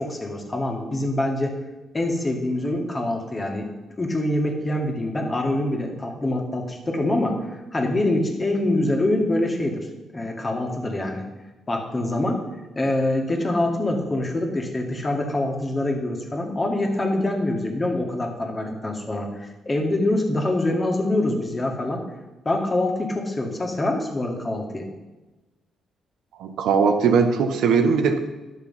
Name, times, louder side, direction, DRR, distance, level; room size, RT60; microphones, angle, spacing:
voice 1, 0.0-1.6 1.9-3.7 4.0-9.9 10.1-11.3 11.7-12.4 12.8-22.0 22.5-24.9, left 1 dB, 25° left, 2 dB, 1.9 m, -25 dB
voice 2, 26.4-28.2, right 5 dB, 85° right, 6 dB, 1.0 m, -19 dB
11.0 x 6.5 x 5.6 m, 1.1 s
cardioid pair, 95°, 0 cm